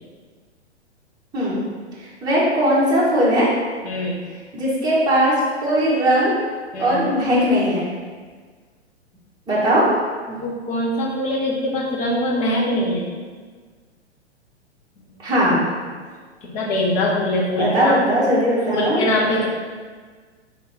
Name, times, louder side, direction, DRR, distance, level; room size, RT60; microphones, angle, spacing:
voice 1, 2.2-3.5 4.5-5.3 5.6-6.3 6.8-7.9 9.5-9.9 15.2-15.6 17.6-19.0, equal, 10° right, -8 dB, 1.3 m, -18 dB
voice 2, 3.8-4.2 6.7-7.0 9.5-9.6 10.3-13.1 15.0-15.1 16.4-18.0 18.7-19.5, left 1 dB, 25° left, -3 dB, 0.9 m, -23 dB
3.8 x 3.4 x 4.1 m, 1.5 s
figure-of-eight pair, 110°, 35 cm